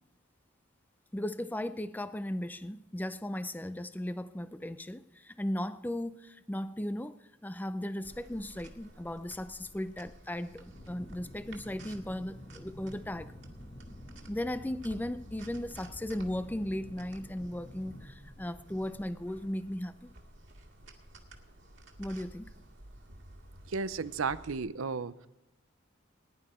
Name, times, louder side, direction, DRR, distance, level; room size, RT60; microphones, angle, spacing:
voice 1, 1.1-7.1 7.4-13.3 14.3-20.1 22.0-22.5, left 1 dB, 10° left, 13 dB, 0.4 m, -36 dB
sound 1, 8.0-24.6, right 1 dB, 65° right, 2.0 m, -54 dB
Aircraft, 10.7-20.1, left 1 dB, 30° left, 1.2 m, -50 dB
voice 2, 23.7-25.3, right 4 dB, 85° right, 15 dB, 0.6 m, -34 dB
19.5 x 11.0 x 4.4 m, 0.93 s
head